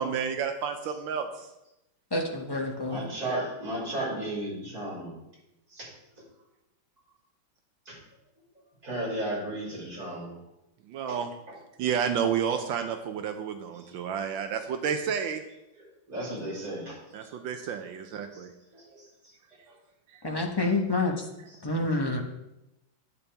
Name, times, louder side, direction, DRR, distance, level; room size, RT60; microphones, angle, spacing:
voice 1, 0.0-1.5 10.9-11.3 11.8-15.4 17.1-18.5, right 7 dB, 80° right, 6 dB, 1.4 m, -30 dB
voice 2, 2.1-3.0 20.2-21.1 21.6-22.2, left 2 dB, 25° left, 1 dB, 0.5 m, -27 dB
voice 3, 2.8-5.1 5.7-5.9 7.8-8.0 8.8-10.4 11.1-11.2 11.5-11.6 13.7-13.9 15.7-17.4 18.3-18.5 18.7-19.7 21.5-21.6, right 1 dB, 50° right, -7 dB, 4.9 m, -35 dB
11.0 x 8.4 x 3.4 m, 0.90 s
omnidirectional pair, 2.1 m